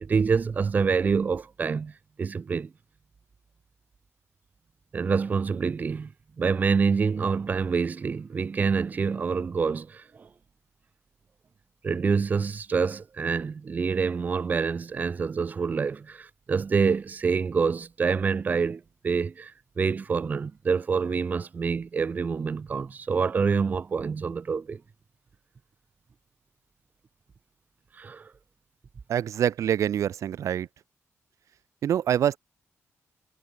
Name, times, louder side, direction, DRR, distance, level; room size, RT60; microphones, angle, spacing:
voice 1, 0.0-1.9 2.2-2.7 4.9-6.1 6.4-10.3 11.8-19.5 19.8-24.8 28.0-28.3, right 5 dB, 30° right, 0.7 m, -26 dB
voice 2, 29.1-30.7 31.8-32.4, right 10 dB, 75° right, 0.8 m, -25 dB
wide cardioid pair, 175°, 5 cm